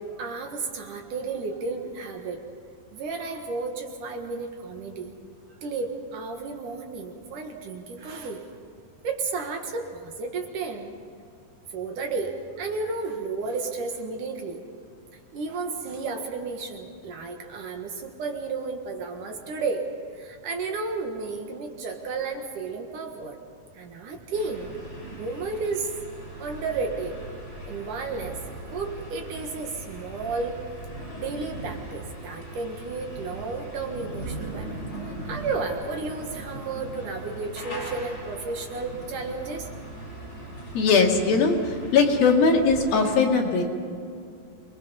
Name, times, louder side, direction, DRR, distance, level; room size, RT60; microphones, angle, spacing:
voice 1, 0.0-2.4 2.9-5.2 5.6-8.5 9.0-10.9 11.7-12.3 12.6-14.6 15.3-19.9 20.1-23.4 23.7-24.7 25.2-25.9 26.4-27.2 27.6-28.4 28.7-30.6 31.1-39.7, right 4 dB, 60° right, 3 dB, 2.9 m, -32 dB
sound 1, 24.3-43.0, right 2 dB, 15° left, 4.4 m, -39 dB
voice 2, 40.7-43.6, left 4 dB, 70° left, 0 dB, 4.0 m, -20 dB
27.5 x 21.0 x 5.6 m, 2.4 s
omnidirectional pair, 4.4 m